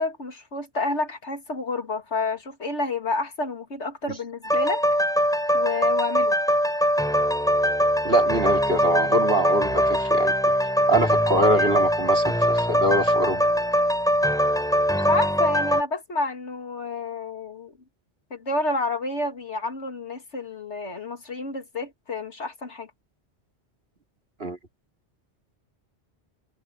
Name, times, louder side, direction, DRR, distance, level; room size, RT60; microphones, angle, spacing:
voice 1, 0.0-4.8 5.5-6.4 14.9-17.7 18.3-22.9, left 3 dB, 85° left, 3.0 m, -29 dB
sound 1, 4.4-15.8, equal, 5° left, 7.0 m, -22 dB
voice 2, 8.0-10.3 10.9-13.4 24.4-24.6, right 1 dB, 60° right, 2.8 m, -24 dB
omnidirectional pair, 1.1 m